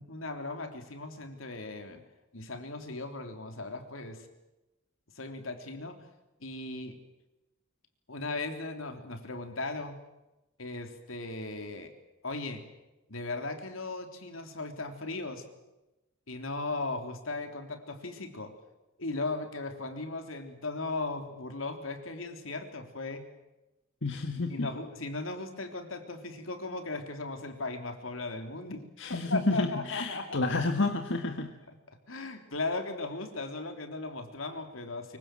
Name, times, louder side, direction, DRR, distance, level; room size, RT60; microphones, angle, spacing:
voice 1, 0.0-2.0 2.3-4.3 5.2-6.1 6.4-7.0 8.1-10.0 10.6-11.9 12.2-12.6 13.1-15.5 16.3-18.6 19.0-23.3 24.5-30.4 32.1-35.2, left 3 dB, 85° left, 6 dB, 3.5 m, -37 dB
voice 2, 24.0-24.7 29.0-31.5, left 2 dB, 65° left, 5 dB, 1.7 m, -30 dB
25.0 x 24.0 x 7.7 m, 1.0 s
head